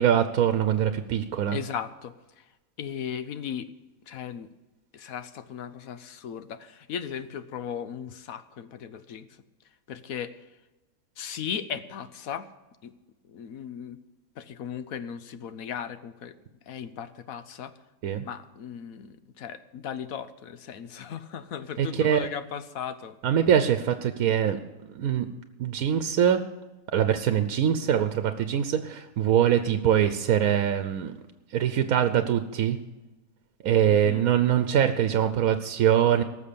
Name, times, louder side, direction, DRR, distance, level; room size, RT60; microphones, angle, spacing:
voice 1, 0.0-1.6 18.0-18.2 21.8-22.3 23.2-24.6 24.9-25.3 25.6-26.4 26.9-31.1 31.5-32.8 33.6-36.2, right 9 dB, 80° right, 9 dB, 1.2 m, -23 dB
voice 2, 1.5-2.4 2.8-3.7 4.1-4.5 4.9-9.3 9.9-10.4 11.2-12.5 12.8-12.9 13.3-14.0 14.4-16.3 16.7-17.7 18.2-23.2 33.8-34.2, left 8 dB, 75° left, 12 dB, 1.2 m, -37 dB
18.0 x 7.0 x 6.8 m, 1.1 s
omnidirectional pair, 1.5 m